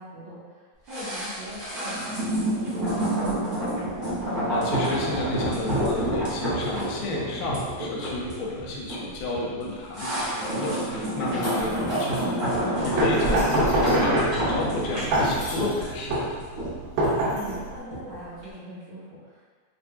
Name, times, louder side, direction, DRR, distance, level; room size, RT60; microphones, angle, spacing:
voice 1, 0.0-3.8 13.3-13.7 17.2-19.5, equal, 70° right, -12 dB, 1.6 m, -41 dB
sound 1, 0.9-18.1 18.4-18.5, right 1 dB, 45° right, 1.1 m, -28 dB
voice 2, 4.2-16.1, left 2 dB, 85° left, -3 dB, 2.5 m, -31 dB
sound 2, 11.2-12.3 13.1-14.1 14.6-15.9 17.0-17.5, left 2 dB, 70° left, 1.9 m, -43 dB
sound 3, 12.8-17.8, right 1 dB, 90° right, 2.7 m, -26 dB
6.8 x 2.5 x 2.2 m, 1.5 s
omnidirectional pair, 4.1 m